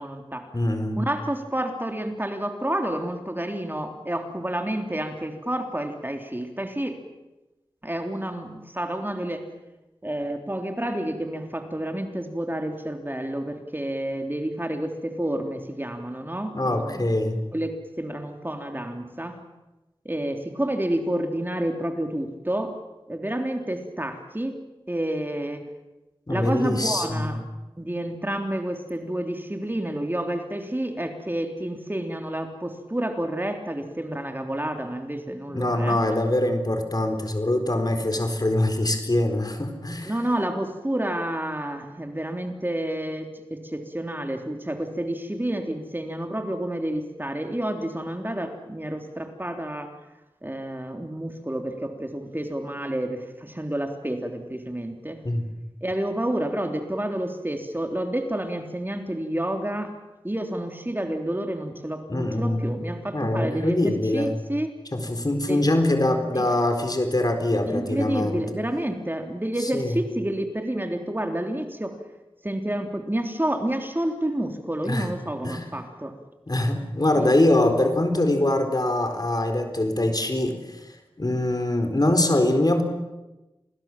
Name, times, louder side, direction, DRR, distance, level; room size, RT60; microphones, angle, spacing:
voice 1, 0.0-0.5 1.0-7.0 7.8-9.5 10.0-17.1 17.5-19.4 20.0-22.7 23.1-24.5 24.9-25.7 26.3-27.4 27.8-36.0 40.0-49.9 50.4-55.2 55.8-59.9 60.2-64.8 65.5-65.6 66.3-66.5 67.6-72.0 72.4-76.1 77.2-77.3, right 1 dB, 20° right, 4 dB, 3.4 m, -29 dB
voice 2, 0.5-1.0 16.5-17.4 26.3-27.3 35.5-40.1 55.2-55.5 62.1-62.7 63.1-64.4 64.9-68.4 69.6-70.0 74.8-75.1 75.4-75.6 76.5-80.9 81.2-82.8, left 1 dB, 45° left, 6 dB, 4.3 m, -23 dB
28.0 x 20.0 x 7.5 m, 1.0 s
wide cardioid pair, 40°, 9 cm